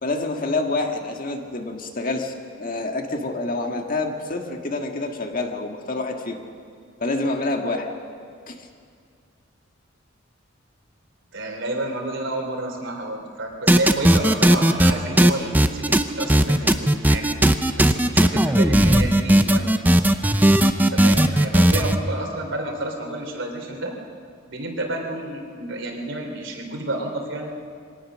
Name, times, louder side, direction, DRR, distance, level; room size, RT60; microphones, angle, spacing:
voice 1, 0.0-6.4 7.0-7.9 8.5-8.7, left 2 dB, 45° left, 3 dB, 1.7 m, -27 dB
voice 2, 11.3-17.3 17.8-19.9 20.9-23.9 24.5-27.6, right 1 dB, 70° right, 2 dB, 3.4 m, -30 dB
sound 1, 13.7-14.9 15.2-22.0, right 1 dB, 10° right, 0.7 m, -16 dB
23.0 x 18.0 x 6.3 m, 2.2 s
head